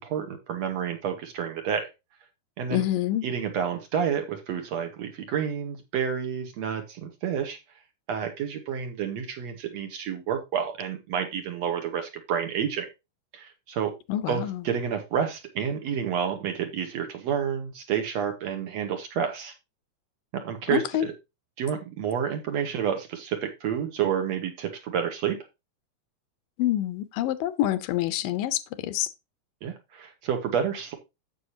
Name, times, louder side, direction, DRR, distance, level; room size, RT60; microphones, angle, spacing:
voice 1, 0.0-1.9 2.6-2.8 3.2-7.6 8.1-12.9 13.3-13.9 14.3-19.5 20.3-21.1 21.6-25.4 29.6-30.9, right 8 dB, 60° right, 2.2 m, -29 dB
voice 2, 2.7-3.3 14.1-14.7 20.7-21.1 26.6-29.1, left 13 dB, 85° left, 2.4 m, -27 dB
9.6 x 7.9 x 2.8 m
omnidirectional pair, 3.9 m